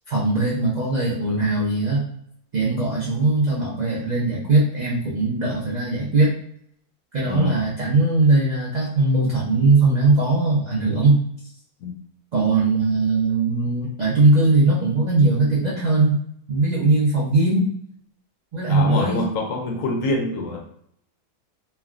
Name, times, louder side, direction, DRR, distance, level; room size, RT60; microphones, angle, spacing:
voice 1, 0.1-2.1 2.5-6.3 7.1-11.2 12.3-16.2 16.5-17.7 18.5-19.2, right 2 dB, 80° right, -6 dB, 0.3 m, -20 dB
voice 2, 7.2-7.7 11.8-11.9 18.7-20.6, left 2 dB, 70° left, 1 dB, 0.9 m, -26 dB
3.3 x 2.2 x 2.3 m, 0.67 s
omnidirectional pair, 1.6 m